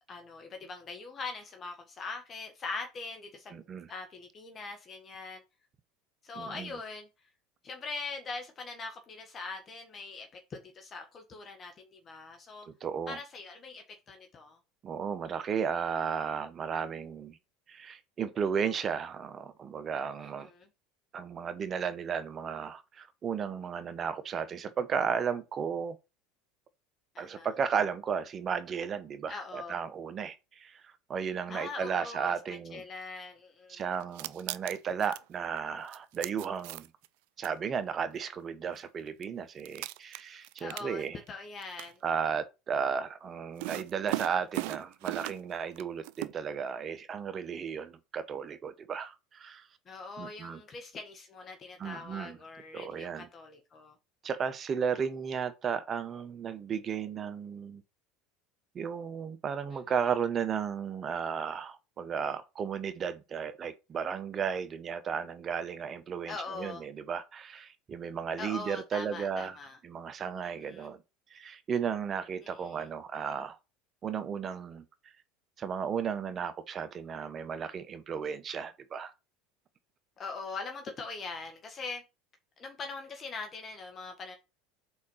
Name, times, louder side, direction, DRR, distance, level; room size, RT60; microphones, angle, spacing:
voice 1, 0.1-3.6 3.9-5.4 6.2-7.1 7.6-12.7 13.1-14.6 20.2-20.7 27.1-27.5 29.3-29.8 31.5-33.8 40.6-42.0 49.8-54.0 66.3-66.8 68.4-69.8 70.4-70.9 72.4-72.9 80.2-82.0 82.6-84.4, left 4 dB, 35° left, 1.5 m, -42 dB
voice 2, 3.5-3.9 6.4-6.8 12.7-13.2 14.8-17.4 17.7-20.5 21.1-26.0 27.2-32.8 33.7-36.9 37.4-41.2 42.0-49.7 50.2-50.6 51.8-52.4 52.7-53.3 54.2-57.8 58.7-69.6 69.8-71.0 71.3-73.6 74.0-74.8 75.6-79.1, right 7 dB, 35° right, 0.8 m, -34 dB
sound 1, 34.0-35.2 35.9-37.1 37.4-37.5 38.7-38.8 39.2-39.3 39.6-41.3 41.6-41.9 43.6-45.5 45.8-46.3, right 20 dB, 70° right, 0.3 m, -37 dB
4.8 x 4.3 x 5.5 m
hypercardioid pair, 90°, 0 cm